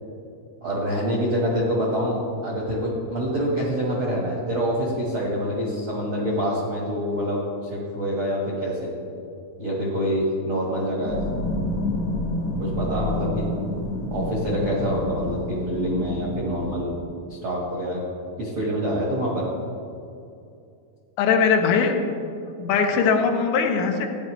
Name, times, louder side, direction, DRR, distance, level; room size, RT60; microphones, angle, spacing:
voice 1, 0.6-7.4 7.7-8.9 9.6-11.2 12.6-13.5 14.1-16.9 17.3-18.0 18.4-19.5, equal, 80° right, -4 dB, 1.1 m, -26 dB
sound 1, 11.0-16.8, left 1 dB, 70° left, 1.8 m, -28 dB
voice 2, 21.2-22.0 22.6-24.1, left 5 dB, 90° left, 3 dB, 3.1 m, -20 dB
14.0 x 9.8 x 3.1 m, 2.5 s
omnidirectional pair, 5.0 m